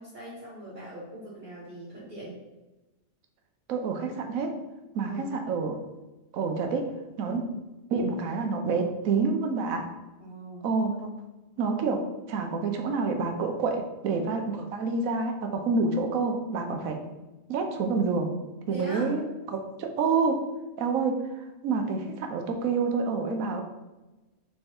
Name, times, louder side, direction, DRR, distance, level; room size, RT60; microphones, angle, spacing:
voice 1, 0.0-2.4 5.0-5.3 10.2-10.7 18.7-19.1, right 1 dB, 35° right, -9 dB, 1.3 m, -40 dB
voice 2, 3.7-4.6 4.9-5.8 6.3-6.9 7.2-7.5 7.9-9.9 10.6-11.1 11.6-17.0 17.5-18.3 18.7-19.2 19.5-20.4 20.8-23.6, right 4 dB, 85° right, 5 dB, 1.1 m, -28 dB
3.5 x 3.1 x 4.3 m, 1.1 s
omnidirectional pair, 1.4 m